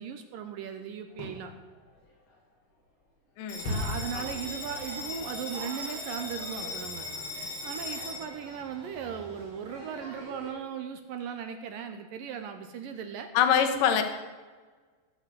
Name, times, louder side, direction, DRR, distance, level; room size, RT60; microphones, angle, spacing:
voice 1, 0.0-1.5 3.6-7.1 7.6-13.3, right 7 dB, 70° right, 7 dB, 2.2 m, -37 dB
Fireworks, 1.1-6.9 7.3-7.4, left 2 dB, 85° left, 7.3 m, -41 dB
Bell, 3.5-10.5, left 2 dB, 20° left, 5.1 m, -39 dB
voice 2, 13.3-14.0, left 8 dB, 60° left, 7 dB, 2.7 m, -24 dB
17.5 x 8.0 x 7.7 m, 1.4 s
omnidirectional pair, 4.9 m